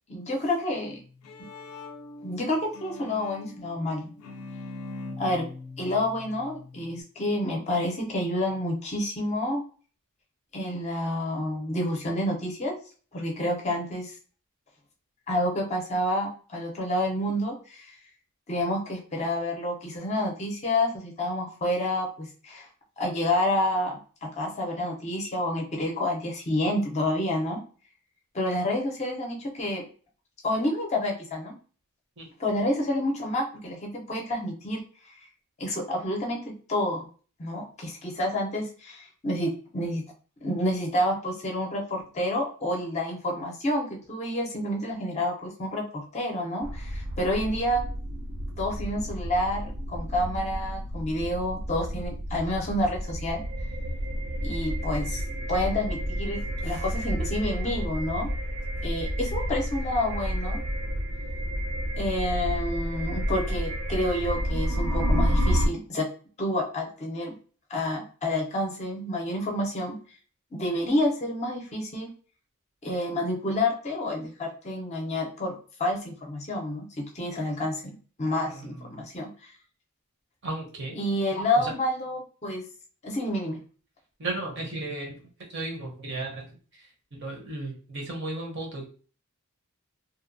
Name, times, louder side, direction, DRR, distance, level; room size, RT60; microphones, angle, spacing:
voice 1, 0.1-1.0 1.4-1.5 2.2-4.1 5.2-5.4 5.8-9.6 10.5-12.7 13.1-14.2 15.3-17.9 18.5-22.7 23.0-27.6 28.3-29.8 30.4-31.5 32.4-35.1 35.6-37.1 37.4-40.0 40.4-47.8 48.6-53.4 54.4-55.2 55.5-58.3 58.8-60.6 62.0-66.1 66.4-67.3 67.7-70.0 70.5-72.1 72.8-79.5 80.9-82.6 83.0-83.6, left 1 dB, 30° left, 0 dB, 0.5 m, -29 dB
Bowed string instrument, 0.9-7.0, left 2 dB, 90° left, 0.4 m, -42 dB
sound 1, 46.6-65.7, equal, 80° right, 0.4 m, -30 dB
voice 2, 78.5-79.1 80.4-81.0 81.6-81.7 84.2-85.1 85.5-86.4 86.7-86.8 87.2-88.9, right 2 dB, 50° right, 1 dB, 0.7 m, -34 dB
2.7 x 2.2 x 2.5 m, 0.40 s
head